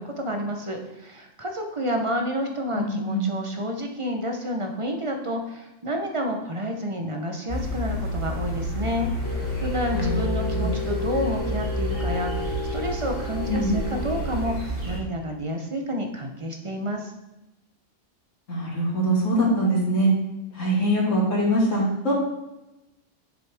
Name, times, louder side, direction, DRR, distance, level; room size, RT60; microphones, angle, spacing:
voice 1, 0.0-9.1 9.4-17.1, equal, 30° right, 3 dB, 0.8 m, -30 dB
voice 2, 2.7-3.3 9.9-10.2 10.5-10.7 13.5-13.7 18.5-20.1 20.5-22.1, right 1 dB, 75° left, -6 dB, 2.6 m, -23 dB
sound 1, 7.5-15.0, equal, 80° right, 2.8 m, -29 dB
sound 2, 9.2-14.4, left 3 dB, 20° left, 0.9 m, -33 dB
7.4 x 6.7 x 3.5 m, 0.97 s
omnidirectional pair, 1.3 m